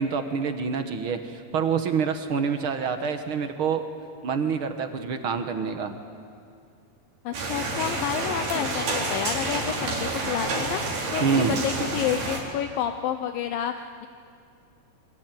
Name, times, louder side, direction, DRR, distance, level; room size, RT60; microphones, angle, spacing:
voice 1, 0.0-3.8 4.2-6.0 11.2-11.6, right 6 dB, 60° right, 7 dB, 1.3 m, -26 dB
voice 2, 7.3-14.1, left 9 dB, 75° left, 8 dB, 2.5 m, -30 dB
sound 1, 7.3-12.4, right 2 dB, 80° right, 6.0 m, -29 dB
27.5 x 23.5 x 9.3 m, 2.3 s
omnidirectional pair, 4.3 m